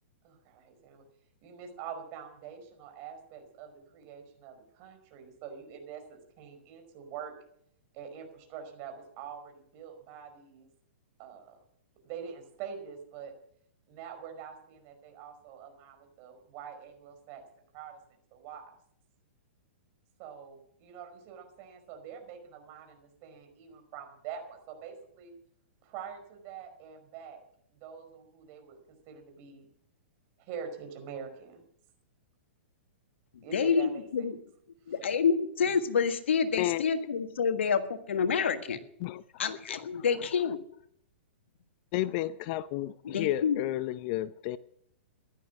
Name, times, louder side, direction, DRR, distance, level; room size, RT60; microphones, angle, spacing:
voice 1, 0.2-1.0 1.4-7.3 7.9-10.7 11.2-11.6 12.0-13.3 13.9-17.4 17.7-18.0 18.3-18.7 20.2-25.3 25.8-27.4 27.7-28.8 29.1-29.7 30.4-31.6 33.4-34.3 34.9-35.0, right 7 dB, 40° right, 6 dB, 5.0 m, -45 dB
voice 2, 33.5-34.4 34.9-38.8 39.4-40.6 43.0-43.6, left 6 dB, 75° left, 8 dB, 1.6 m, -28 dB
voice 3, 39.0-40.3 41.9-44.6, left 15 dB, 45° left, 16 dB, 0.6 m, -33 dB
16.0 x 11.5 x 6.2 m, 0.67 s
hypercardioid pair, 125°, 6 cm